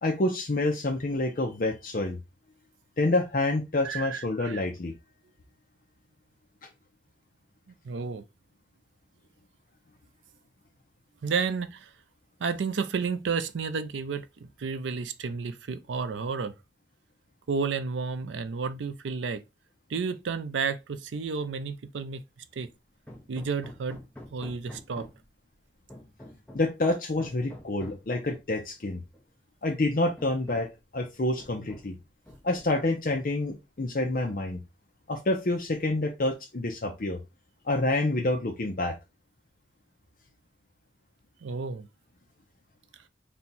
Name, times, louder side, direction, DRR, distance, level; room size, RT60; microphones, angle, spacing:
voice 1, 0.0-2.2 3.0-4.9 26.5-29.0 29.6-30.7 30.9-31.9 32.4-34.6 35.1-37.2 37.6-38.9, left 2 dB, 50° left, 0.6 m, -27 dB
voice 2, 3.8-4.6 7.8-8.2 11.2-11.9 12.4-16.5 17.5-19.4 19.9-22.2 22.5-22.7 23.3-24.0 24.3-25.1 41.4-41.9, right 5 dB, 85° right, 0.4 m, -31 dB
Hammer, 23.1-25.3 25.9-26.8 27.2-28.1 29.1-29.2 29.6-29.8 30.2-30.8 31.4-32.0 32.3-32.9, left 1 dB, 10° left, 0.7 m, -47 dB
4.3 x 2.2 x 3.9 m
head